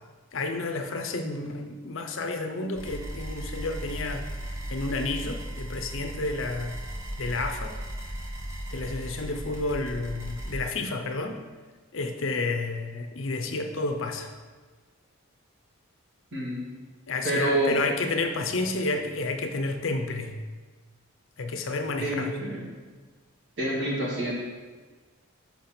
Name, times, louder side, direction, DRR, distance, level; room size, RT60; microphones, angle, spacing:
voice 1, 0.3-4.3 4.7-6.8 7.2-7.8 8.7-11.4 11.9-14.3 17.1-20.3 21.4-22.3, left 3 dB, 60° left, 5 dB, 0.6 m, -30 dB
sound 1, 2.7-10.6, right 1 dB, 15° right, 1.1 m, -36 dB
voice 2, 16.3-16.6 17.2-17.8 22.0-22.7 23.6-24.3, right 1 dB, 55° right, -4 dB, 1.9 m, -27 dB
5.8 x 4.3 x 5.8 m, 1.4 s
head